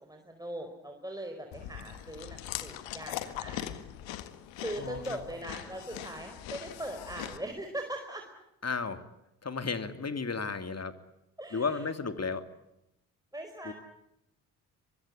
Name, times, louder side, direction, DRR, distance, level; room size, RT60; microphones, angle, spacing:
voice 1, 0.0-3.7 4.6-8.2 11.4-11.8 13.3-13.7, right 1 dB, 10° right, 3 dB, 4.9 m, -40 dB
Chewing mastication, 1.5-7.4, left 12 dB, 70° left, 1.9 m, -41 dB
voice 2, 4.8-5.2 8.6-9.0 9.4-10.9 11.5-12.5 13.6-13.7, left 4 dB, 35° left, 10 dB, 2.8 m, -33 dB
24.0 x 22.5 x 9.9 m, 0.84 s
hypercardioid pair, 45°, 46 cm